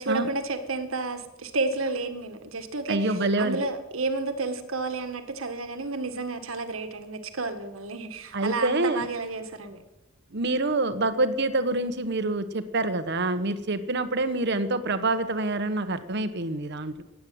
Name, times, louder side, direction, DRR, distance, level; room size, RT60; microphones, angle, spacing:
voice 1, 0.0-3.1 3.4-9.8, right 3 dB, 80° right, 8 dB, 1.7 m, -31 dB
voice 2, 2.9-3.6 8.3-9.1 10.3-17.0, right 2 dB, 55° right, 11 dB, 1.1 m, -26 dB
15.5 x 9.4 x 9.4 m, 1.0 s
head